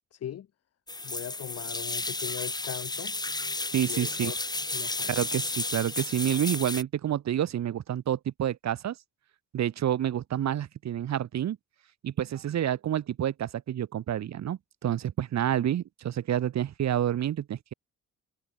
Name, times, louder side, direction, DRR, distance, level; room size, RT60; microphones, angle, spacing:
voice 1, 0.1-0.5 1.0-3.2 3.9-4.4 4.7-5.2, left 10 dB, 50° left, 2.1 m, -39 dB
sound 1, 0.9-6.8, left 2 dB, 10° left, 5.3 m, -33 dB
voice 2, 3.7-4.3 5.1-9.0 9.5-11.6 12.0-17.7, right 11 dB, 55° right, 4.7 m, -29 dB
cardioid pair, 165°, 33 cm